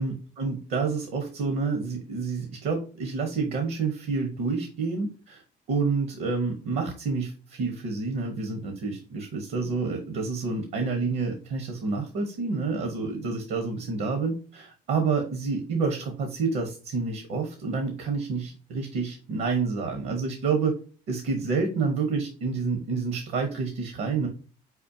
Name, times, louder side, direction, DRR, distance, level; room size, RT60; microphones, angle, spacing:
voice 1, 0.0-5.4 5.7-20.7 21.1-24.3, right 4 dB, 70° right, 4 dB, 1.1 m, -28 dB
4.6 x 4.2 x 2.7 m, 0.38 s
cardioid pair, 110°, 17 cm